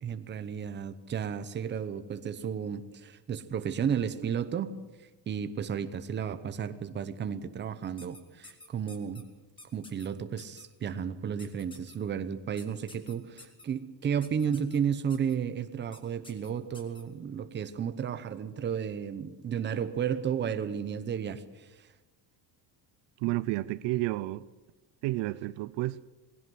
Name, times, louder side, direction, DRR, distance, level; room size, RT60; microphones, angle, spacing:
voice 1, 0.0-4.7 5.3-9.2 9.7-21.9, right 7 dB, 25° right, 0.9 m, -33 dB
sound 1, 8.0-9.2 9.6-10.1 10.4-10.6 11.4-12.0 12.6-13.6 14.2-14.8 15.1-15.3 15.9-16.0 16.2-17.0, left 2 dB, 10° left, 1.9 m, -50 dB
voice 2, 23.2-24.4 25.0-26.0, right 18 dB, 75° right, 0.7 m, -31 dB
20.0 x 16.5 x 7.8 m
cardioid pair, 175°, 43 cm